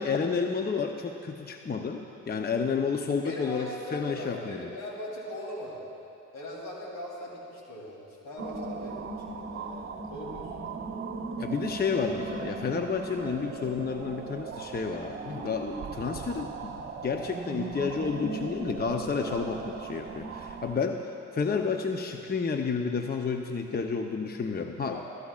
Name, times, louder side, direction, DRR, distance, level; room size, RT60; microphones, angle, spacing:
voice 1, 0.0-4.7 11.4-25.0, left 5 dB, 30° left, 5 dB, 0.7 m, -31 dB
voice 2, 3.2-5.9 6.3-10.5 24.9-25.0, left 1 dB, 70° left, -3 dB, 3.2 m, -40 dB
sound 1, 8.4-20.8, right 4 dB, 40° right, 0.9 m, -38 dB
17.5 x 14.0 x 2.4 m, 2.8 s
supercardioid pair, 55°, 32 cm